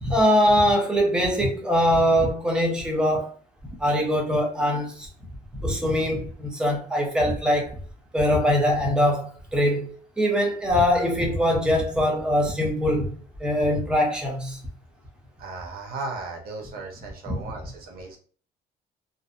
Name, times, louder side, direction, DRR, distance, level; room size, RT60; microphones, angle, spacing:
voice 1, 0.0-3.3 3.6-5.1 5.5-7.8 8.1-13.1 13.4-14.6 17.3-17.4, equal, 5° right, 0.6 m, -22 dB
voice 2, 15.4-18.2, right 3 dB, 60° right, 0.7 m, -36 dB
2.6 x 2.0 x 2.5 m
cardioid pair, 110°, 17 cm